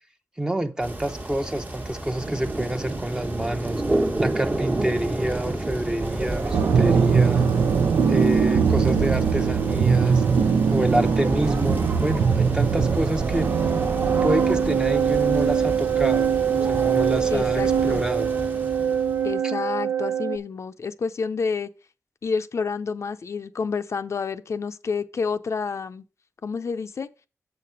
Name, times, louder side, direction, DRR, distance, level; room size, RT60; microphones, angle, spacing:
voice 1, 0.4-3.8 4.2-7.5 8.1-10.3 10.7-13.5 14.2-18.3 19.4-19.5, right 1 dB, 10° right, 0.8 m, -27 dB
sound 1, 0.8-19.4, right 2 dB, 30° right, 1.2 m, -31 dB
sound 2, 6.0-18.0, right 3 dB, 50° right, 1.1 m, -34 dB
sound 3, 6.5-20.4, right 7 dB, 80° right, 0.7 m, -22 dB
voice 2, 17.3-18.0 19.2-21.7 22.2-26.0 26.4-27.1, left 5 dB, 55° left, 0.5 m, -29 dB
7.2 x 5.8 x 5.1 m
wide cardioid pair, 105°, 6 cm